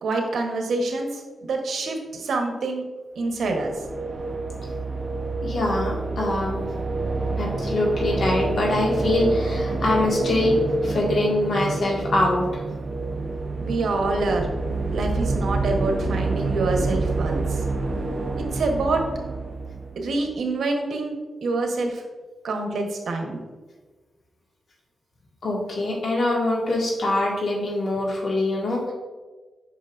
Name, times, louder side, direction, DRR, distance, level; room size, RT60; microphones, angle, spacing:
voice 1, 0.0-2.8 3.1-3.7 13.6-14.5 14.9-17.6 18.3-19.0 20.0-21.2 21.4-22.0 22.4-23.4, right 3 dB, 80° right, 3 dB, 1.1 m, -26 dB
sound 1, 3.3-20.3, right 3 dB, 35° right, 0.8 m, -27 dB
voice 2, 5.4-6.6 7.4-10.6 10.8-12.6 25.4-28.9, left 2 dB, 70° left, -3 dB, 1.9 m, -24 dB
8.1 x 5.6 x 2.5 m, 1.3 s
cardioid pair, 95°, 0 cm